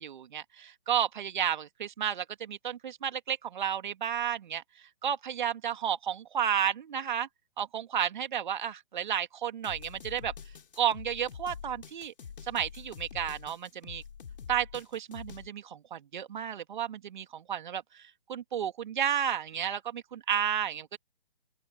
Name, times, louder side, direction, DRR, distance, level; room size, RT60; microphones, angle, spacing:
voice 1, 0.0-4.6 5.0-7.3 7.6-10.3 10.8-12.1 12.5-14.0 14.5-18.0 18.3-21.0, right 9 dB, 50° right, 2.3 m, -32 dB
sound 1, 9.6-15.5, left 7 dB, 60° left, 4.0 m, -46 dB
open air
figure-of-eight pair, 140°, 31 cm